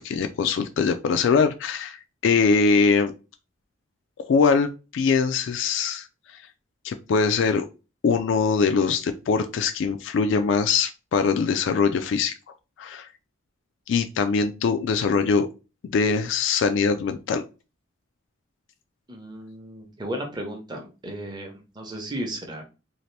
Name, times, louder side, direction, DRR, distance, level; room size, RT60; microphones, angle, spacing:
voice 1, 0.0-3.1 4.2-6.1 6.8-7.7 8.0-12.3 12.8-13.1 13.9-15.5 15.8-17.4, left 5 dB, 65° left, 8 dB, 0.3 m, -22 dB
voice 2, 19.1-22.6, right 1 dB, 20° right, 3 dB, 0.7 m, -34 dB
2.7 x 2.5 x 3.2 m, 0.31 s
head